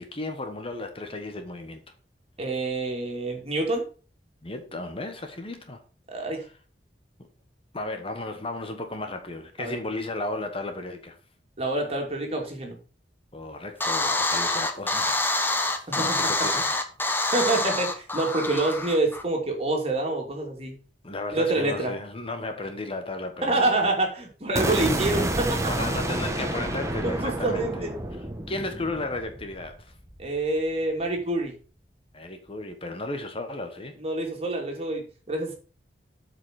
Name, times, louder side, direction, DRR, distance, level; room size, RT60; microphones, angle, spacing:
voice 1, 0.0-1.8 4.4-5.8 6.2-6.3 7.7-11.2 13.3-15.3 16.0-16.8 21.0-23.7 25.7-27.9 28.5-29.9 32.1-34.0, left 2 dB, 35° left, 1.2 m, -34 dB
voice 2, 2.4-3.9 6.1-6.4 9.6-9.7 11.6-12.8 15.9-16.3 17.3-20.8 21.3-21.9 23.4-25.7 27.0-27.9 30.2-31.6 34.0-35.5, right 2 dB, 35° right, 2.8 m, -27 dB
sound 1, 13.8-19.2, left 2 dB, 10° left, 1.1 m, -26 dB
sound 2, 24.6-30.6, right 1 dB, 15° right, 1.3 m, -29 dB
8.1 x 5.3 x 6.4 m
head